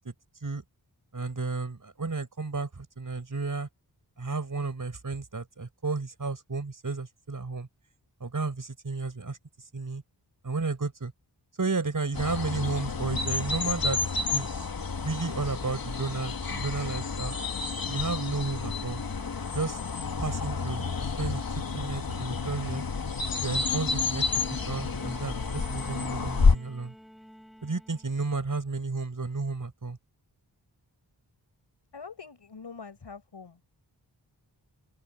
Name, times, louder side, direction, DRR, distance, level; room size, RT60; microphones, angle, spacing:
voice 1, 1.1-3.7 4.2-7.7 8.2-9.4 9.7-10.0 10.4-11.1 11.6-14.0 14.3-14.5 15.0-17.3 17.9-19.0 19.5-19.8 20.2-20.8 21.2-22.8 23.4-24.2 24.5-26.9 27.6-30.0, right 3 dB, 50° right, 5.3 m, -32 dB
sound 1, 12.1-26.6, left 4 dB, 55° left, 1.9 m, -30 dB
Bowed string instrument, 24.3-28.4 29.6-29.7, equal, ahead, 5.3 m, -51 dB
voice 2, 31.9-33.6, left 5 dB, 75° left, 6.8 m, -44 dB
open air
wide cardioid pair, 80°, 42 cm